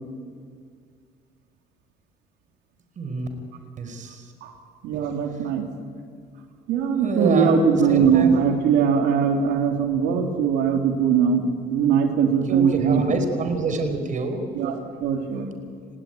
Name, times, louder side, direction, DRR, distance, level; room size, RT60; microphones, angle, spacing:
voice 1, 3.0-3.3 3.8-4.2 7.0-8.3 12.5-14.5, right 3 dB, 50° right, 7 dB, 5.2 m, -27 dB
voice 2, 4.8-5.7 6.7-13.0 14.6-14.8 15.0-15.5, right 6 dB, 85° right, 3 dB, 3.5 m, -21 dB
29.5 x 20.0 x 9.5 m, 2.1 s
cardioid pair, 110°, 17 cm